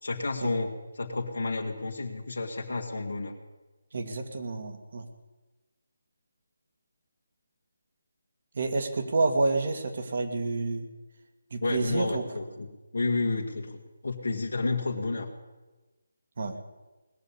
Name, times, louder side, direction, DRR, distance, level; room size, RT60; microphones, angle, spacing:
voice 1, 0.0-3.3 11.6-12.7 12.9-15.3, left 3 dB, 80° left, 0 dB, 1.8 m, -31 dB
voice 2, 3.9-5.1 8.5-10.9 11.5-12.3 16.4-16.6, right 3 dB, 55° right, 6 dB, 2.2 m, -29 dB
19.5 x 6.9 x 9.9 m, 1.2 s
figure-of-eight pair, 155°, 0 cm